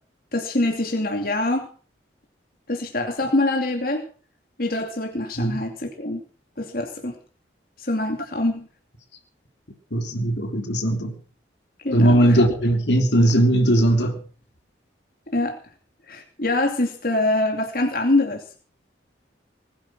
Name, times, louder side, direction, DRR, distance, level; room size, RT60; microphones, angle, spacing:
voice 1, 0.3-1.7 2.7-4.0 4.6-6.2 6.6-7.1 7.8-8.7 11.8-12.4 15.3-15.6 16.1-18.4, left 2 dB, 50° left, 2.6 m, -24 dB
voice 2, 9.9-11.1 11.9-14.2, right 1 dB, 70° left, 3.1 m, -19 dB
20.5 x 10.0 x 6.1 m
head